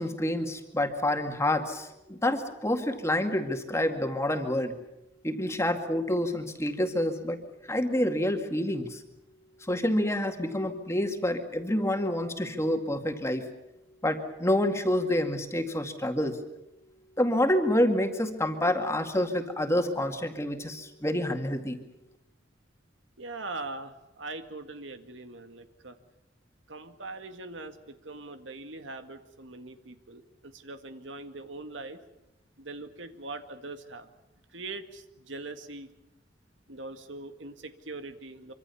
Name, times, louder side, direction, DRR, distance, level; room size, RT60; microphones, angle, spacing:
voice 1, 0.0-4.7 5.2-7.4 7.7-9.0 9.7-13.4 14.0-16.4 17.2-21.8, left 1 dB, 15° left, 5 dB, 2.2 m, -28 dB
voice 2, 23.2-26.0 26.7-32.0 32.6-34.1 34.5-35.9 36.7-38.5, right 3 dB, 85° right, 8 dB, 2.0 m, -41 dB
25.0 x 25.0 x 7.1 m, 0.90 s
head